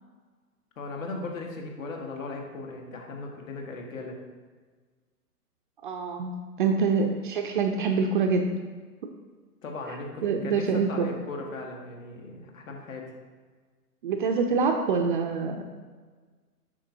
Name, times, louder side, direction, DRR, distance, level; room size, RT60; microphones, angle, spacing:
voice 1, 0.8-4.2 9.6-13.1, left 3 dB, 55° left, 1 dB, 1.7 m, -37 dB
voice 2, 5.8-8.6 10.2-11.1 14.0-15.6, right 5 dB, 35° right, 4 dB, 0.5 m, -25 dB
8.3 x 6.3 x 2.7 m, 1.5 s
figure-of-eight pair, 115°, 47 cm